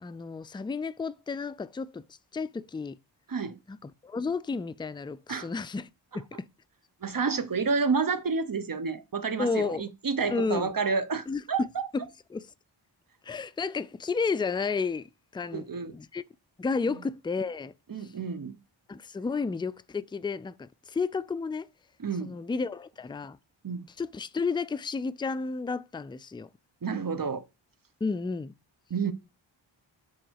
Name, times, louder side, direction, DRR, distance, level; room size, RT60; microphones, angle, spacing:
voice 1, 0.0-2.0 2.3-3.0 3.7-5.9 6.1-6.5 9.4-9.8 10.3-10.7 11.3-11.4 11.9-12.0 12.3-12.5 13.2-15.7 15.9-16.2 16.6-17.7 18.0-18.1 18.9-21.7 22.2-23.4 24.0-26.5 28.0-28.5, left 4 dB, 10° left, 0.3 m, -32 dB
voice 2, 3.3-3.6 5.3-5.5 7.0-11.8 15.5-16.0 16.9-17.0 17.9-18.6 22.0-22.4 23.6-23.9 26.8-27.4 28.9-29.1, right 5 dB, 45° right, 1.0 m, -30 dB
6.4 x 3.9 x 6.3 m
cardioid pair, 60°, 47 cm